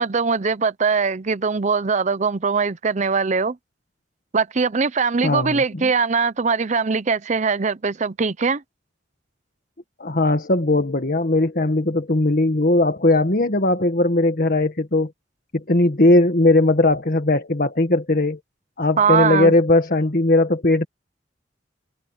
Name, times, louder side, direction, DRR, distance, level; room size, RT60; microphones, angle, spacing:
voice 1, 0.0-3.6 4.3-8.6 19.0-19.5, right 5 dB, 40° right, 0.7 m, -21 dB
voice 2, 5.2-5.9 10.0-15.1 15.5-18.4 18.8-20.8, left 2 dB, 55° left, 1.7 m, -18 dB
head